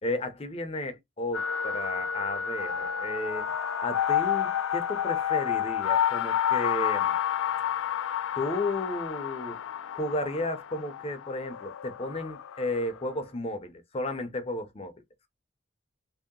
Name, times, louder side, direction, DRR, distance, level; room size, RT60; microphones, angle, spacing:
voice 1, 0.0-7.2 8.4-9.6 9.9-14.9, left 1 dB, 30° left, 0.6 m, -33 dB
sound 1, 1.3-13.0, left 9 dB, 85° left, 0.4 m, -30 dB
3.1 x 2.8 x 3.7 m
head